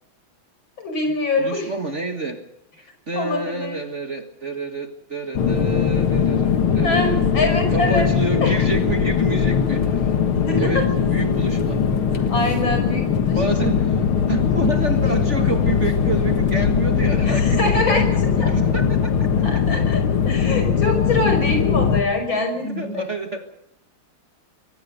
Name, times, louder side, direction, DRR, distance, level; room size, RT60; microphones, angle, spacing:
voice 1, 0.8-1.7 3.1-3.8 6.8-8.1 8.4-8.6 10.3-10.9 12.3-13.6 14.8-15.0 17.2-18.5 19.4-23.0, left 2 dB, 70° left, 5 dB, 6.6 m, -24 dB
voice 2, 1.4-2.4 3.1-10.2 10.6-12.3 13.4-17.6 17.9-19.3 22.7-23.5, right 3 dB, 35° right, 6 dB, 1.9 m, -29 dB
sound 1, 5.4-22.0, left 7 dB, 90° left, 2.5 m, -20 dB
24.5 x 18.0 x 6.7 m, 0.80 s
omnidirectional pair, 2.3 m